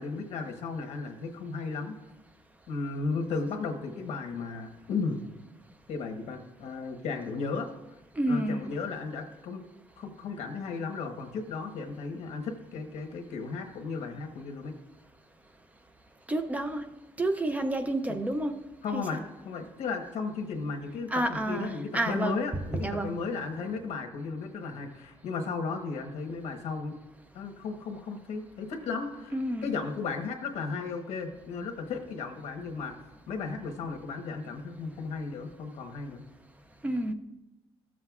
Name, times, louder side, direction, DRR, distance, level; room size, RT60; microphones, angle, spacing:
voice 1, 0.0-2.0 2.7-5.2 5.9-7.7 8.3-9.6 10.0-14.7 18.8-26.9 27.3-32.9 33.3-36.2, left 4 dB, 85° left, 1.1 m, -35 dB
voice 2, 8.2-8.6 16.3-16.8 17.2-18.5 18.9-19.2 21.1-22.4 22.7-23.1 29.3-29.7 36.8-37.1, right 1 dB, 15° right, 0.5 m, -29 dB
13.5 x 7.5 x 2.4 m
cardioid pair, 150°, 11 cm